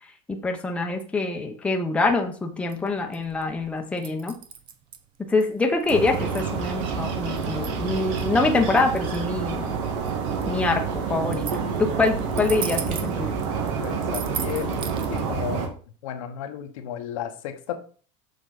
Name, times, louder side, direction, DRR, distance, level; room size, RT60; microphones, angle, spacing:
voice 1, 0.3-4.4 5.2-9.7 10.5-13.3, left 3 dB, 5° left, 3 dB, 0.9 m, -25 dB
sound 1, 2.7-15.2, right 8 dB, 30° right, 0.7 m, -39 dB
sound 2, 5.9-15.7, right 6 dB, 65° right, 1.8 m, -28 dB
voice 2, 13.8-15.8 16.0-17.8, left 10 dB, 85° left, 6 dB, 1.2 m, -33 dB
6.9 x 6.2 x 4.0 m, 0.40 s
supercardioid pair, 160°, 17 cm